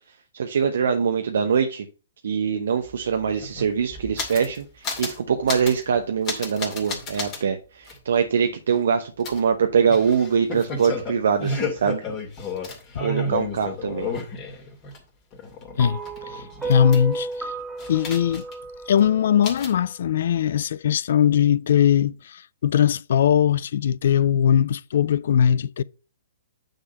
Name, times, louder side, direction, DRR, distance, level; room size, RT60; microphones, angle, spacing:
voice 1, 0.3-1.9 2.2-12.0 13.0-14.1, right 6 dB, 65° right, 0.8 m, -23 dB
sound 1, 2.9-3.0 3.2-4.6 4.8-5.2 5.5-5.8 6.2-7.4 7.9-8.0 9.2-15.0 15.3-17.3 17.8-18.7 18.9-19.0 19.4-19.8, left 3 dB, 30° left, 2.3 m, -32 dB
voice 2, 15.8-17.5 17.9-18.4 18.9-25.8, left 9 dB, 60° left, 0.3 m, -20 dB
sound 2, 15.8-20.1, right 3 dB, 10° right, 1.8 m, -33 dB
8.9 x 3.8 x 5.2 m
figure-of-eight pair, 120°, 0 cm